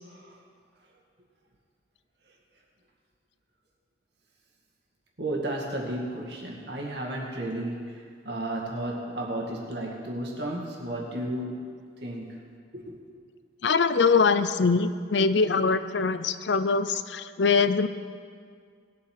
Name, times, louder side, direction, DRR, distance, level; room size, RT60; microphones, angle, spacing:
voice 1, 0.0-0.4 5.2-11.7 12.0-12.4 12.7-13.0, right 1 dB, 65° right, -1 dB, 2.2 m, -33 dB
voice 2, 13.6-17.9, left 4 dB, 75° left, 12 dB, 0.6 m, -23 dB
19.0 x 7.9 x 4.7 m, 2.1 s
head